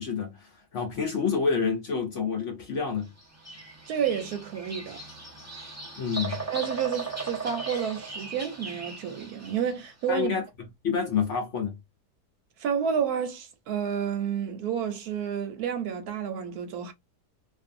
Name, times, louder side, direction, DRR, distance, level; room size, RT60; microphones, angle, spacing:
voice 1, 0.0-3.1 6.0-6.4 10.1-10.4 10.8-11.8, left 6 dB, 60° left, 0.8 m, -28 dB
Bird vocalization bird call bird song, 3.2-9.8, right 3 dB, 15° right, 0.6 m, -38 dB
voice 2, 3.9-5.0 6.5-10.3 12.6-16.9, right 8 dB, 70° right, 1.1 m, -30 dB
2.5 x 2.5 x 2.4 m
omnidirectional pair, 1.8 m